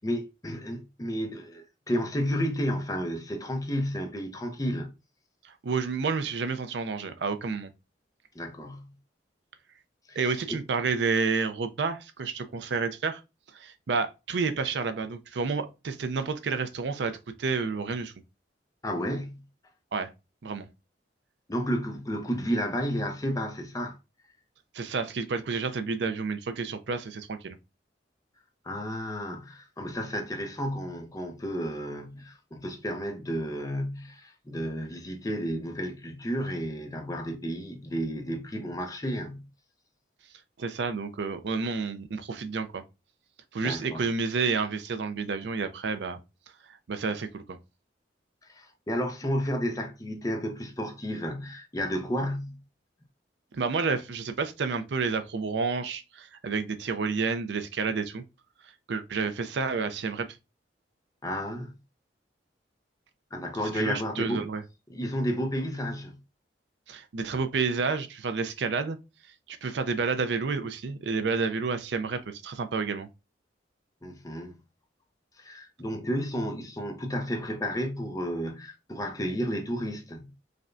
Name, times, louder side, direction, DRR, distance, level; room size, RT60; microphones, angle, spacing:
voice 1, 0.0-4.9 8.3-8.9 10.1-10.2 10.5-10.6 18.8-19.4 21.5-24.0 28.6-39.5 43.6-44.0 48.5-52.6 61.2-61.7 63.3-64.5 64.9-66.2 74.0-74.6 75.4-80.3, equal, 20° left, 0.6 m, -32 dB
voice 2, 5.4-7.7 10.2-13.2 13.5-18.1 19.9-20.1 20.4-20.7 24.7-27.6 40.6-42.8 43.5-46.2 46.9-47.6 53.5-58.2 58.9-60.3 63.7-64.6 66.9-69.0 69.5-73.1, right 4 dB, 70° right, 0.5 m, -30 dB
5.0 x 2.2 x 2.5 m
head